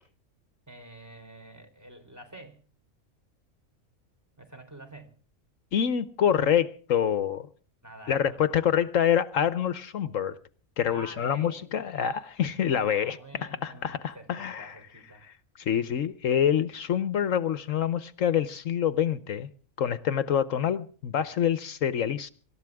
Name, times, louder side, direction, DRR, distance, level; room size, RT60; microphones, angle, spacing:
voice 1, 0.7-2.6 4.4-5.1 7.8-8.8 10.9-11.7 12.8-15.3, right 1 dB, 10° right, 3.6 m, -48 dB
voice 2, 5.7-7.5 8.1-10.4 10.8-14.7 15.6-19.5 19.8-22.3, left 9 dB, 75° left, 1.2 m, -26 dB
26.0 x 13.5 x 3.5 m
omnidirectional pair, 1.4 m